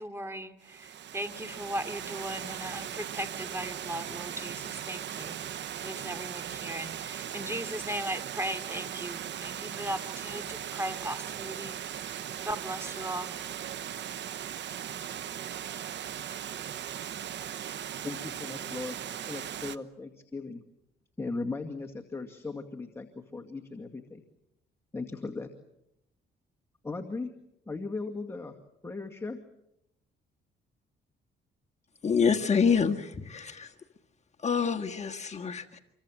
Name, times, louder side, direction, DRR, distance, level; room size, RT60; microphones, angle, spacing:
voice 1, 0.0-5.4 5.7-11.8 12.4-13.4, right 1 dB, 10° right, 10 dB, 2.8 m, -37 dB
Water, 0.6-19.8, right 10 dB, 65° right, 1.1 m, -38 dB
voice 2, 18.0-20.6 21.2-24.2 24.9-25.5 26.8-27.3 27.7-28.6 28.8-29.4, left 3 dB, 15° left, 2 dB, 2.2 m, -37 dB
voice 3, 32.0-33.7 34.4-35.8, left 6 dB, 35° left, 4 dB, 1.7 m, -27 dB
27.0 x 23.5 x 7.6 m, 0.82 s
cardioid pair, 90°, 20 cm